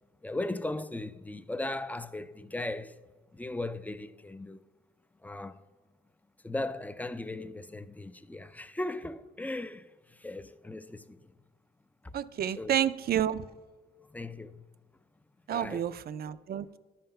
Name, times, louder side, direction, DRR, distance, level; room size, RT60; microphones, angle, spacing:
voice 1, 0.2-3.0 3.3-4.6 5.2-5.6 6.4-11.3 12.0-12.2 12.6-12.8 14.1-14.6 15.5-15.9, left 2 dB, 10° left, 0.4 m, -37 dB
voice 2, 12.1-13.4 15.5-16.8, right 10 dB, 50° right, 0.4 m, -30 dB
12.0 x 5.7 x 5.5 m
cardioid pair, 90°, 20 cm